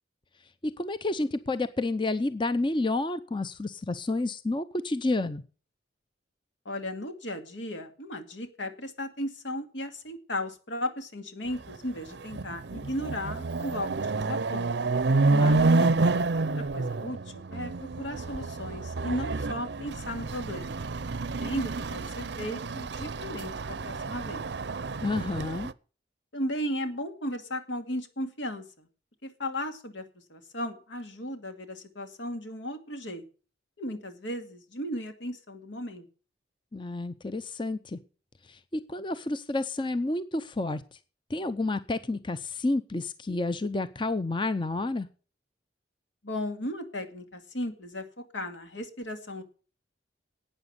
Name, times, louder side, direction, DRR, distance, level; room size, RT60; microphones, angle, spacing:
voice 1, 0.6-5.4 15.3-15.9 25.0-25.7 36.7-38.0 38.4-41.0 41.3-45.1, left 2 dB, 25° left, 12 dB, 0.6 m, -30 dB
voice 2, 6.7-14.9 16.3-20.8 21.3-24.5 26.3-28.9 29.2-30.0 30.3-33.2 33.8-36.1 46.2-49.4, left 1 dB, 80° left, 7 dB, 2.3 m, -36 dB
Chatter / Car passing by / Motorcycle, 11.7-11.8 12.2-25.7, right 3 dB, 65° right, 0.6 m, -29 dB
12.0 x 9.1 x 8.0 m, 0.38 s
head